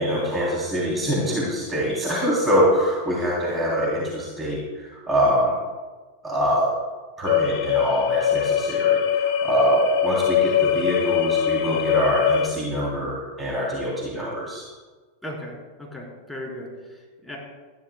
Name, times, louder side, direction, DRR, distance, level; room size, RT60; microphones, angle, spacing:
voice 1, 0.0-5.5 6.2-6.7 7.2-14.6, equal, 15° right, -5 dB, 3.4 m, -24 dB
sound 1, 7.3-12.5, left 9 dB, 50° left, 1.6 m, -22 dB
voice 2, 15.2-17.4, left 1 dB, ahead, -3 dB, 4.4 m, -37 dB
20.0 x 14.0 x 2.3 m, 1.4 s
figure-of-eight pair, 90°, 0 cm